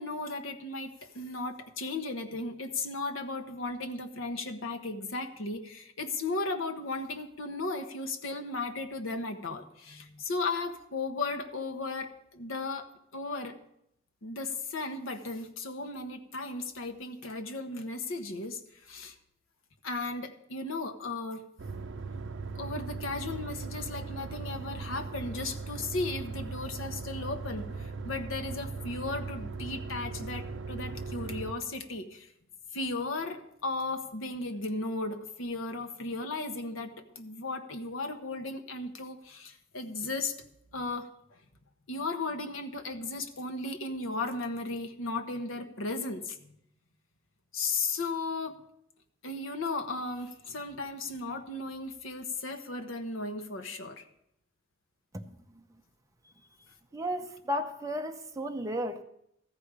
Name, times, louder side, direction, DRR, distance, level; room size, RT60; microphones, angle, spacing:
voice 1, 0.0-13.6 14.2-19.1 19.8-21.4 22.6-32.3 32.7-40.3 40.7-41.1 41.9-46.6 47.5-48.6 49.2-54.0, left 3 dB, 80° left, 1.0 m, -35 dB
sound 1, 21.6-31.5, right 4 dB, 65° right, 0.6 m, -39 dB
voice 2, 56.9-59.0, equal, 15° right, 0.7 m, -33 dB
13.5 x 5.0 x 8.1 m
head